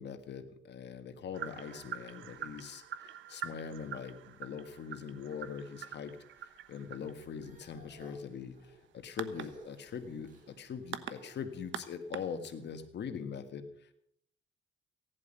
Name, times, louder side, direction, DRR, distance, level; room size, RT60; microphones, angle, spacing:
voice 1, 0.0-13.9, left 6 dB, 60° left, 8 dB, 1.8 m, -42 dB
sound 1, 0.7-3.3 3.7-4.3 4.9-5.9 6.3-11.5, right 1 dB, 40° right, 6.5 m, -59 dB
sound 2, 1.3-12.8, right 10 dB, 75° right, 1.0 m, -46 dB
16.0 x 11.0 x 5.5 m, 0.70 s
cardioid pair, 90°, 20 cm